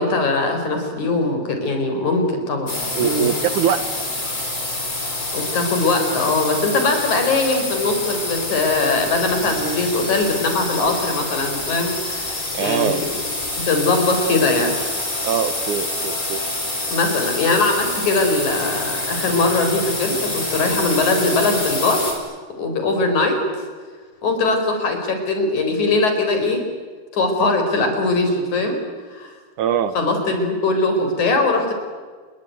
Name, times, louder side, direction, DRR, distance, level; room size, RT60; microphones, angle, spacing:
voice 1, 0.0-3.3 5.3-13.0 13.6-14.7 16.9-22.1 22.6-23.4 24.2-26.6 27.1-28.8 29.1-29.3 30.0-31.7, left 3 dB, 60° left, 5 dB, 5.7 m, -21 dB
sound 1, 2.7-22.1, left 2 dB, 20° left, 5.5 m, -27 dB
voice 2, 3.0-3.8 12.5-13.0 15.2-16.4 29.6-29.9, right 9 dB, 70° right, 12 dB, 2.5 m, -22 dB
30.0 x 21.0 x 9.4 m, 1.5 s
omnidirectional pair, 3.9 m